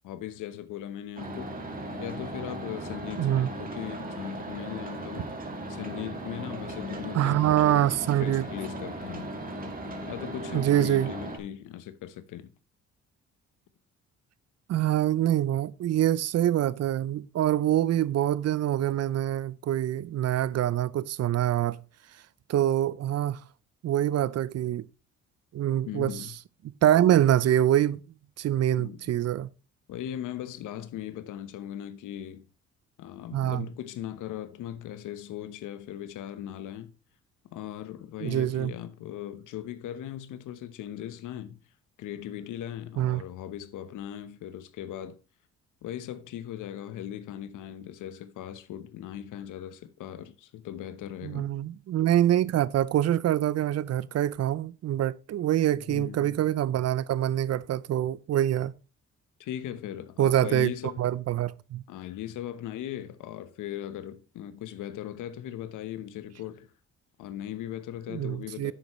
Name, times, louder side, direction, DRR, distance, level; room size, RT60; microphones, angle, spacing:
voice 1, 0.0-7.9 8.2-9.3 10.1-12.5 25.8-26.3 28.8-29.0 29.9-32.4 33.0-36.9 37.5-41.6 42.0-45.2 45.8-51.5 55.7-56.4 59.4-61.1 61.9-66.7 67.2-68.7, left 11 dB, 85° left, 1.0 m, -39 dB
sound 1, 1.2-11.4, right 1 dB, 30° right, 2.4 m, -37 dB
voice 2, 3.2-3.5 7.1-8.5 10.5-11.1 14.7-21.8 22.5-23.4 23.8-24.8 25.5-26.3 26.6-28.0 28.4-29.5 33.3-33.7 38.2-38.7 43.0-43.2 51.2-58.7 60.2-60.7 61.0-61.8 68.1-68.7, right 12 dB, 55° right, 0.6 m, -25 dB
10.5 x 8.0 x 3.1 m
cardioid pair, 90°, 30 cm